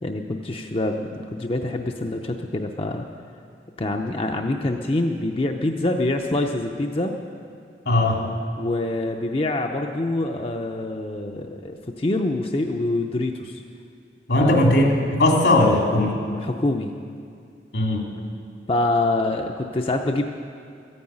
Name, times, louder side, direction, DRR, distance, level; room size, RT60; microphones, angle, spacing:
voice 1, 0.0-3.0 3.8-7.2 8.6-13.6 14.4-14.6 16.4-16.9 18.7-20.2, left 2 dB, 30° left, 3 dB, 0.6 m, -25 dB
voice 2, 7.9-8.3 14.3-16.2 17.7-18.0, left 1 dB, 85° left, 0 dB, 2.5 m, -18 dB
14.0 x 9.5 x 8.8 m, 2.4 s
head